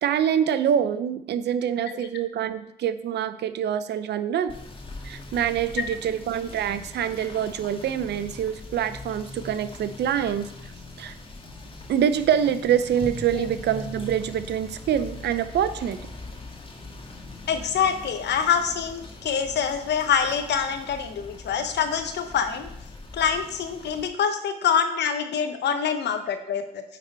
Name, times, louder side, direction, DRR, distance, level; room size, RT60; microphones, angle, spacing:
voice 1, 0.0-4.5 5.0-10.5 11.0-11.2 11.9-16.0, right 9 dB, 60° right, 13 dB, 0.6 m, -25 dB
Rain / Motor vehicle (road), 4.5-24.1, left 2 dB, 25° left, 1.6 m, -41 dB
voice 2, 17.5-22.7 23.1-26.8, left 7 dB, 65° left, 7 dB, 1.0 m, -25 dB
9.0 x 4.1 x 4.3 m, 0.77 s
hypercardioid pair, 50°, 19 cm